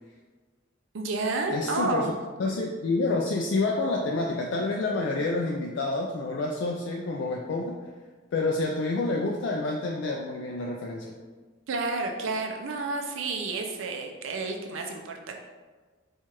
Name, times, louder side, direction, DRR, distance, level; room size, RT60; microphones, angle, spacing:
voice 1, 0.9-2.1 11.7-15.4, right 3 dB, 70° right, 3 dB, 0.5 m, -30 dB
voice 2, 1.5-2.0 2.4-7.8 8.3-11.1, left 2 dB, 60° left, 0 dB, 0.3 m, -28 dB
4.4 x 2.4 x 2.9 m, 1.4 s
head